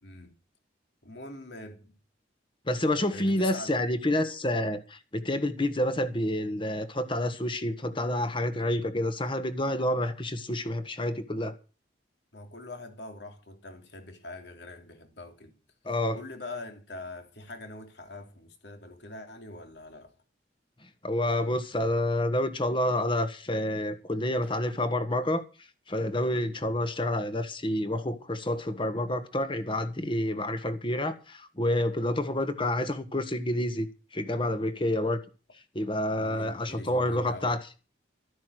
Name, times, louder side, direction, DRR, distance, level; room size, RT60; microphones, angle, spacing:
voice 1, 0.0-0.3 1.0-2.0 3.1-3.8 12.3-15.6 16.1-20.2 24.4-24.5 36.1-37.6, left 2 dB, 65° left, 3.1 m, -43 dB
voice 2, 2.7-11.5 15.8-16.2 21.0-25.4 25.9-33.9 34.1-35.2 35.7-37.6, left 1 dB, 30° left, 1.5 m, -28 dB
13.5 x 9.8 x 6.3 m
head